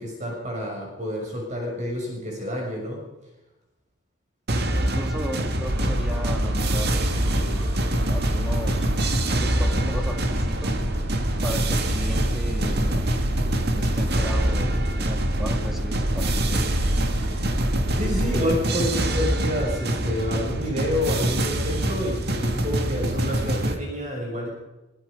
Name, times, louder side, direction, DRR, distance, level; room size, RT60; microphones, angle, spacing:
voice 1, 0.0-3.0 17.9-24.5, left 1 dB, 35° right, -1 dB, 6.7 m, -29 dB
sound 1, 4.5-23.8, right 1 dB, 50° right, 2.1 m, -26 dB
voice 2, 4.8-8.9 9.2-10.8 11.4-13.0 13.7-16.6, equal, ahead, 3 dB, 2.6 m, -36 dB
sound 2, 5.7-18.4, equal, 70° right, 3.3 m, -28 dB
23.5 x 21.5 x 5.4 m, 1.0 s
head